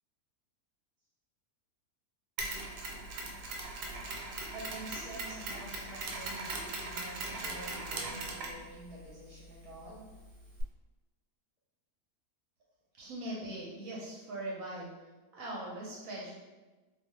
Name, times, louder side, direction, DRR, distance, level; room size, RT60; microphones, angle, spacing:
Mechanisms, 2.4-10.6, right 2 dB, 90° right, 1.1 m, -40 dB
voice 1, 4.5-10.0, right 1 dB, 35° left, -10 dB, 0.5 m, -48 dB
voice 2, 13.0-15.0 15.3-16.4, right 1 dB, 70° right, -4 dB, 0.9 m, -40 dB
2.5 x 2.3 x 3.1 m, 1.2 s
omnidirectional pair, 1.7 m